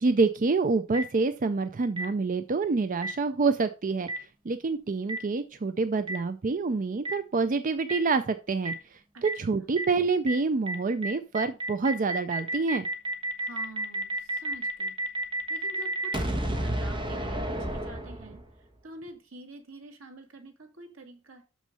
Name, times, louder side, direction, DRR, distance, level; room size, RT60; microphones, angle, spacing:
voice 1, 0.0-12.9, right 4 dB, 40° right, 10 dB, 0.5 m, -27 dB
Boom, 0.9-1.0 2.0-2.1 3.0-3.1 4.1-4.2 5.1-5.2 6.1-6.2 7.0-7.1 7.9-8.0 8.6-8.7 9.2-9.3 9.8-9.9 10.3-10.4 10.7-10.8 11.0-18.6, right 1 dB, 25° right, 1.3 m, -31 dB
voice 2, 9.1-9.7 13.4-15.0 15.5-18.4 18.8-21.4, right 2 dB, 85° right, 4 dB, 2.2 m, -47 dB
6.6 x 6.2 x 5.4 m, 0.33 s
head